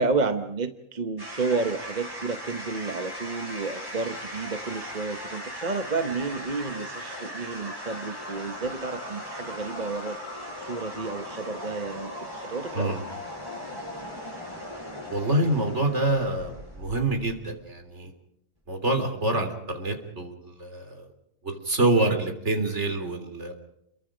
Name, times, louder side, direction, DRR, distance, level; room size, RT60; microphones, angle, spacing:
voice 1, 0.0-10.3 10.6-12.9, right 3 dB, 35° right, 8 dB, 1.0 m, -31 dB
sound 1, 1.2-17.6, equal, 15° right, 7.0 m, -38 dB
voice 2, 15.1-18.1 18.7-21.1 21.4-23.5, right 2 dB, 55° right, 5 dB, 3.9 m, -26 dB
29.5 x 22.5 x 5.1 m, 0.79 s
omnidirectional pair, 1.4 m